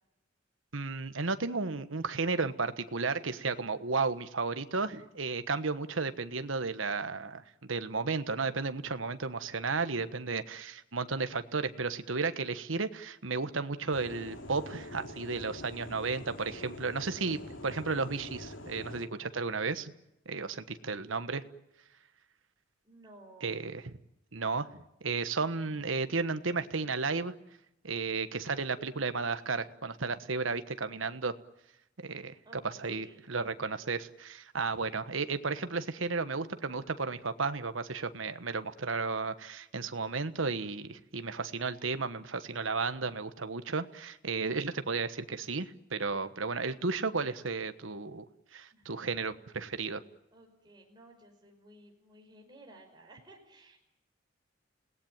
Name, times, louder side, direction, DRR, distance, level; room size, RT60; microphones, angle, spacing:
voice 1, 0.7-19.9 20.2-21.4 23.4-23.8 24.3-27.3 27.8-31.3 32.0-32.3 32.6-48.2 48.5-50.0, right 4 dB, 85° right, 11 dB, 1.3 m, -33 dB
sound 1, 13.9-19.1, left 1 dB, 70° left, 3.3 m, -45 dB
voice 2, 22.8-23.7 32.4-33.2 48.7-48.9 50.3-53.8, right 1 dB, 20° right, 1 dB, 5.4 m, -56 dB
29.5 x 18.5 x 9.0 m, 0.88 s
head